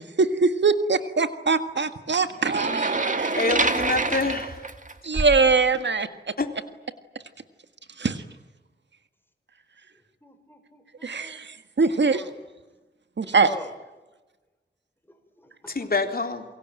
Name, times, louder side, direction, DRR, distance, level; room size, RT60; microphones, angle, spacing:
voice 1, 0.2-3.4 5.0-6.1 8.0-8.2 11.0-12.2 13.2-13.5, right 4 dB, 70° right, 10 dB, 1.8 m, -22 dB
sound 1, 2.4-5.5, right 2 dB, 45° right, 2.0 m, -26 dB
voice 2, 3.3-4.6 6.4-6.5 15.7-16.5, left 3 dB, 55° left, 5 dB, 3.6 m, -26 dB
voice 3, 10.2-11.4 11.9-12.4 13.2-13.7 15.1-15.9, equal, 10° left, 6 dB, 5.5 m, -44 dB
28.5 x 23.0 x 9.0 m, 1.2 s
wide cardioid pair, 85°, 19 cm